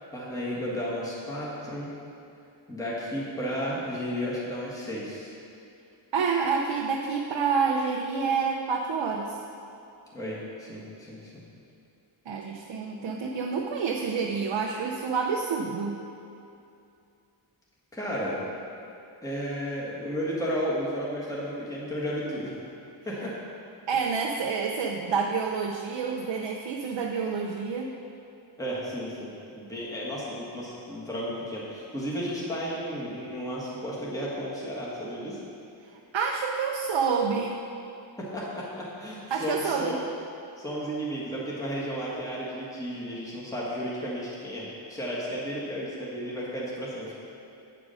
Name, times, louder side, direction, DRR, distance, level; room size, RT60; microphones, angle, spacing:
voice 1, 0.1-1.9 2.7-5.3 10.1-11.3 17.9-18.4 19.2-22.5 23.0-23.3 28.6-35.4 38.2-39.9 40.6-47.1, equal, 5° left, -7 dB, 1.4 m, -33 dB
voice 2, 6.1-9.4 12.3-16.0 23.9-27.9 36.1-37.6 39.3-39.9, right 5 dB, 70° right, 0 dB, 0.7 m, -28 dB
8.7 x 4.8 x 6.3 m, 2.6 s
wide cardioid pair, 140°, 47 cm